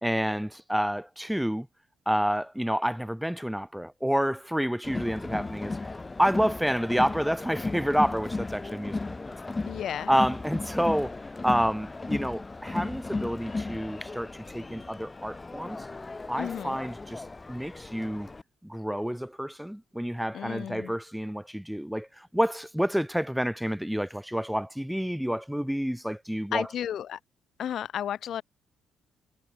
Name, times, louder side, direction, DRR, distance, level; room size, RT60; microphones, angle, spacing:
voice 1, 0.0-1.7 2.0-5.8 6.2-9.0 10.1-11.1 11.4-15.8 16.3-18.3 18.6-26.7, equal, ahead, 1.5 m, -29 dB
Crowd, 4.8-18.4, left 3 dB, 20° left, 1.1 m, -36 dB
voice 2, 9.7-10.1 16.4-16.8 20.3-20.9 26.5-27.2 27.6-28.4, left 10 dB, 65° left, 2.8 m, -33 dB
cardioid pair, 90°, 0 cm